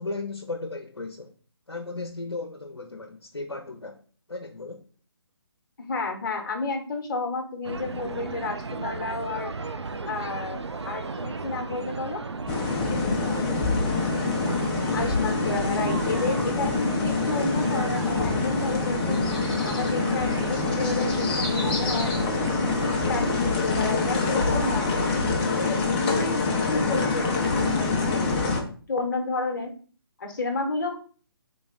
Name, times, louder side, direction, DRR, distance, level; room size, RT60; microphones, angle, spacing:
voice 1, 0.0-1.3 1.7-4.0 4.3-4.8 12.8-13.5, left 3 dB, 85° left, 4 dB, 0.7 m, -36 dB
voice 2, 5.8-9.5 10.0-12.2 13.8-14.2 14.9-19.3 19.6-24.9 25.4-29.7 30.2-31.0, left 3 dB, 50° left, 4 dB, 1.1 m, -31 dB
sound 1, 7.6-23.4, right 4 dB, 90° right, 0.4 m, -35 dB
sound 2, 12.5-28.6, left 3 dB, 20° left, 0.7 m, -25 dB
3.9 x 3.3 x 3.8 m, 0.41 s
figure-of-eight pair, 145°, 14 cm